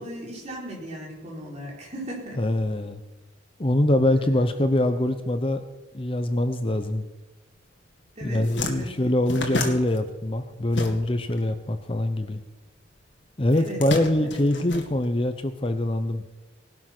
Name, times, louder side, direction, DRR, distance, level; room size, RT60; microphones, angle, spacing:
voice 1, 0.0-2.4 4.1-4.2 8.2-8.9 9.2-9.6 13.5-13.8, equal, 35° right, -2 dB, 4.8 m, -37 dB
voice 2, 2.4-3.0 3.6-5.6 5.9-7.1 8.2-12.4 13.4-16.2, left 1 dB, 30° left, 8 dB, 0.8 m, -24 dB
sound 1, 7.8-8.0 8.2-11.4 11.6-12.8 13.5-15.5, left 2 dB, 70° left, 2.1 m, -32 dB
19.0 x 12.0 x 6.1 m, 1.1 s
head